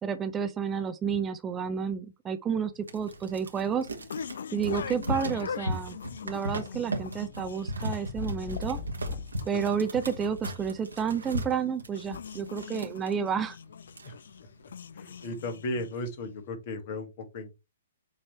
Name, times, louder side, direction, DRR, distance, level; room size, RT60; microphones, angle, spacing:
voice 1, 0.0-3.9 4.5-6.0 6.2-8.8 9.5-13.6, right 7 dB, 15° right, 0.6 m, -30 dB
sound 1, 2.8-16.3, left 7 dB, 65° left, 0.4 m, -43 dB
sound 2, 2.9-13.2 13.6-13.7 13.9-14.6 15.0-15.3, right 1 dB, 80° right, 1.5 m, -37 dB
sound 3, 8.1-9.4 11.0-11.6, left 6 dB, 30° left, 1.3 m, -38 dB
voice 2, 14.9-17.5, left 2 dB, 45° left, 1.5 m, -36 dB
7.2 x 3.2 x 4.2 m
figure-of-eight pair, 120°, 0 cm